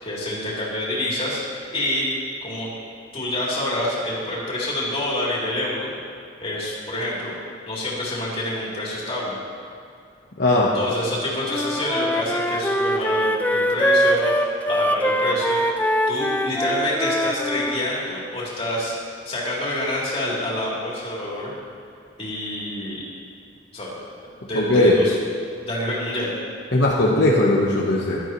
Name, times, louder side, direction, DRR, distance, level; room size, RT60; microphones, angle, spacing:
voice 1, 0.0-2.1 2.4-2.7 3.1-5.9 6.4-7.3 7.7-9.4 10.7-15.6 16.1-18.9 19.3-21.5 22.2-23.0 23.7-23.9 24.4-25.1 25.6-26.3, left 1 dB, 30° left, -6 dB, 3.1 m, -27 dB
voice 2, 10.4-10.7 24.5-25.0 26.7-28.2, left 1 dB, 65° left, -4 dB, 1.1 m, -18 dB
Wind instrument woodwind instrument, 11.5-17.8, equal, 10° left, 0.4 m, -22 dB
15.0 x 12.0 x 3.1 m, 2.5 s
head